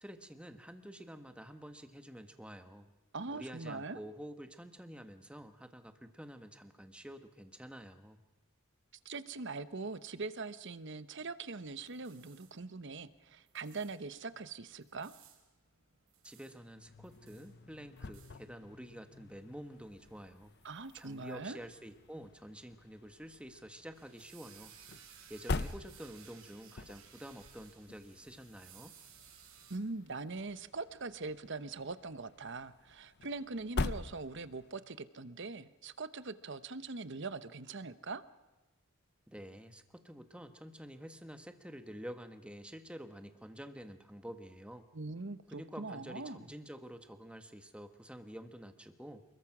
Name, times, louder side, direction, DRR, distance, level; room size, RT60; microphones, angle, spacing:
voice 1, 0.0-2.9 3.3-8.2 16.2-20.5 20.9-24.7 25.3-28.9 39.3-44.9 45.5-49.2, equal, 5° right, 7 dB, 1.4 m, -49 dB
voice 2, 3.1-4.0 9.0-15.1 20.6-21.6 29.7-38.2 44.9-46.5, right 3 dB, 55° right, 13 dB, 1.0 m, -42 dB
sound 1, 11.7-29.8, right 8 dB, 75° right, 4.7 m, -61 dB
sound 2, 16.7-34.8, left 3 dB, 50° left, 0.7 m, -45 dB
29.0 x 21.5 x 6.1 m, 1.1 s
head